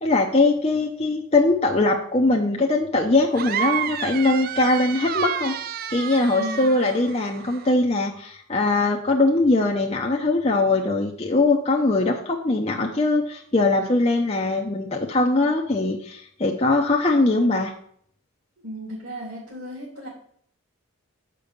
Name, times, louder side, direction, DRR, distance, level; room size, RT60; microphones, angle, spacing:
voice 1, 0.0-5.5 5.9-17.7, left 2 dB, 30° left, 0 dB, 0.6 m, -21 dB
sound 1, 3.3-7.7, right 9 dB, 45° right, 0.4 m, -30 dB
voice 2, 6.4-6.8 18.6-20.1, equal, 65° right, -6 dB, 2.8 m, -35 dB
6.8 x 5.3 x 6.5 m, 0.63 s
head